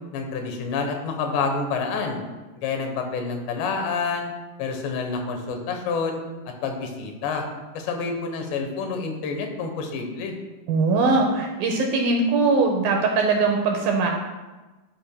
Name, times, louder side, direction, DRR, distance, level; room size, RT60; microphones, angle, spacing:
voice 1, 0.1-2.2 2.6-4.3 4.6-6.2 6.6-7.4 7.7-10.3, left 4 dB, 90° left, 4 dB, 3.2 m, -28 dB
voice 2, 10.7-14.1, right 3 dB, 80° right, 2 dB, 2.2 m, -21 dB
11.0 x 8.6 x 2.2 m, 1.2 s
omnidirectional pair, 4.8 m